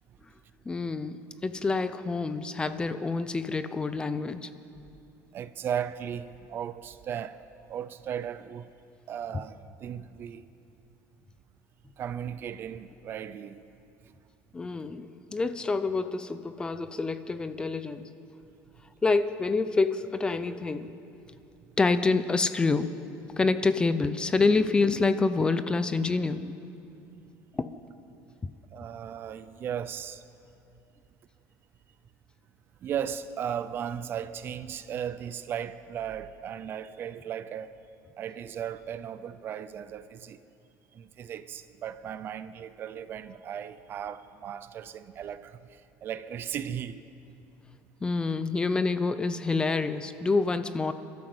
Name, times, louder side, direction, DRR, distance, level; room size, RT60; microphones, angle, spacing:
voice 1, 0.7-4.5 14.5-18.1 19.0-20.9 21.8-22.9 23.4-26.5 27.5-27.7 48.0-50.9, left 3 dB, 15° left, 0.6 m, -27 dB
voice 2, 5.3-7.4 7.7-8.7 9.1-10.5 12.0-13.6 28.7-30.2 32.8-37.7 38.2-40.4 40.9-47.0, right 9 dB, 35° right, 0.6 m, -36 dB
29.0 x 13.0 x 7.9 m
cardioid pair, 165°, 7 cm